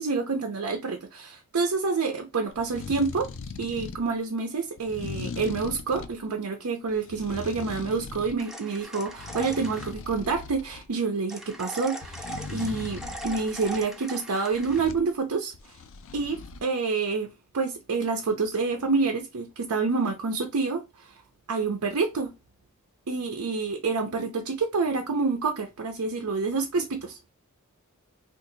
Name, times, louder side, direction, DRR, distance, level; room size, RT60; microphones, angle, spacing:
voice 1, 0.0-3.3 3.6-15.5 16.1-21.1 21.5-22.3 23.1-27.3, right 4 dB, 75° right, 0.6 m, -28 dB
sound 1, 2.5-4.1 4.8-6.2 6.9-8.4 8.8-10.9 12.0-13.8 14.5-15.1 15.5-16.6, left 4 dB, 60° left, 0.4 m, -40 dB
sound 2, 8.4-9.9 11.3-14.8, right 1 dB, ahead, 0.5 m, -40 dB
2.7 x 2.5 x 3.8 m
head